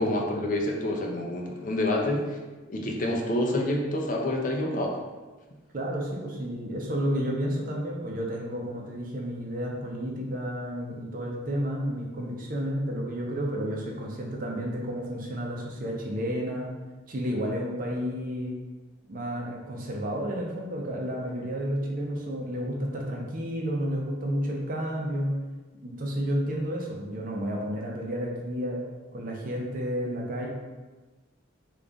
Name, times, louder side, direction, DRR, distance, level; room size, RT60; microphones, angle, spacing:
voice 1, 0.0-2.4 2.7-5.0, left 1 dB, 40° left, 0 dB, 0.5 m, -27 dB
voice 2, 5.7-16.7 17.1-18.5 19.1-25.3 25.8-28.8 29.1-30.5, equal, 45° right, -1 dB, 0.6 m, -31 dB
3.4 x 2.4 x 3.8 m, 1.2 s
head